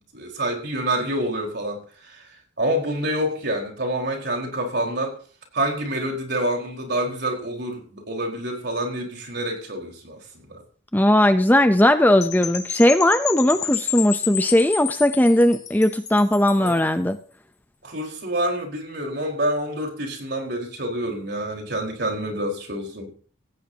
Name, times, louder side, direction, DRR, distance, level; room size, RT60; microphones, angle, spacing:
voice 1, 0.1-2.3 2.6-5.2 5.5-10.6 16.6-16.8 17.8-23.1, right 1 dB, 55° right, 1 dB, 4.6 m, -27 dB
voice 2, 10.9-17.2, left 1 dB, 10° left, 9 dB, 0.6 m, -18 dB
Percussion / Wind chime, 12.2-16.9, left 9 dB, 35° left, 1.7 m, -31 dB
17.5 x 15.5 x 2.9 m, 0.41 s
head